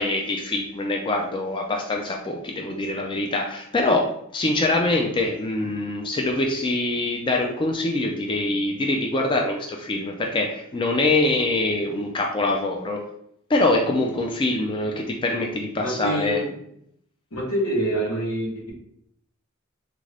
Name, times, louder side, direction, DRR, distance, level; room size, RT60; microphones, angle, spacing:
voice 1, 0.0-13.0 13.5-16.4, left 2 dB, 25° left, 1 dB, 0.3 m, -24 dB
voice 2, 15.8-16.5 17.3-18.7, right 1 dB, 80° left, -2 dB, 1.1 m, -26 dB
3.5 x 2.5 x 3.2 m, 0.72 s
head